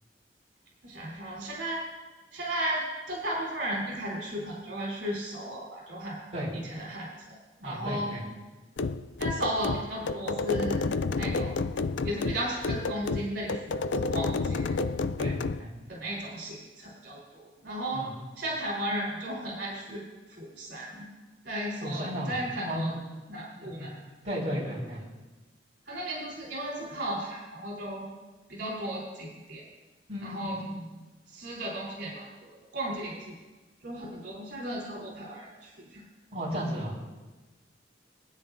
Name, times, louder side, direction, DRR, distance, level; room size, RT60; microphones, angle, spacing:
voice 1, 0.8-1.8 2.3-2.8 3.1-6.2 6.5-8.1 9.2-11.5 12.0-14.8 15.9-18.0 18.4-21.0 21.4-22.9 23.3-24.0 25.8-28.1 28.5-29.6 30.2-30.6 31.3-33.3 33.8-36.0, right 1 dB, 65° right, -4 dB, 3.5 m, -35 dB
voice 2, 7.6-8.2 15.2-15.7 17.9-18.1 21.8-22.3 22.6-22.9 23.5-23.9 24.2-25.0 30.1-30.4 30.7-30.8 36.3-37.1, equal, 40° right, -7 dB, 4.4 m, -34 dB
sound 1, 8.8-15.6, left 3 dB, 80° left, 0.4 m, -30 dB
24.0 x 9.0 x 2.6 m, 1.2 s
head